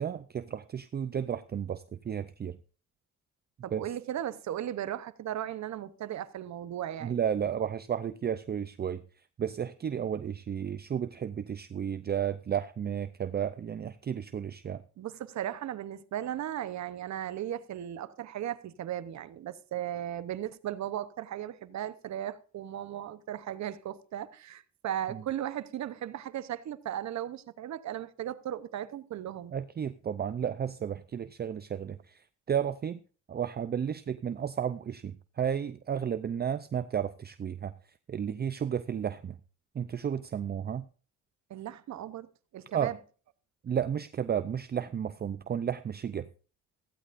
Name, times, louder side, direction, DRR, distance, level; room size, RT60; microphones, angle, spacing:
voice 1, 0.0-2.6 3.7-3.8 7.0-9.0 9.4-14.8 25.1-25.2 29.5-32.2 32.5-33.0 33.3-37.7 38.1-39.4 39.7-40.8 42.7-42.9 43.6-46.3, right 8 dB, 35° right, 0.5 m, -33 dB
voice 2, 3.6-7.2 15.0-29.5 41.5-42.3 42.5-43.0, right 11 dB, 65° right, 0.9 m, -36 dB
15.5 x 15.0 x 2.6 m
cardioid pair, 90°, 30 cm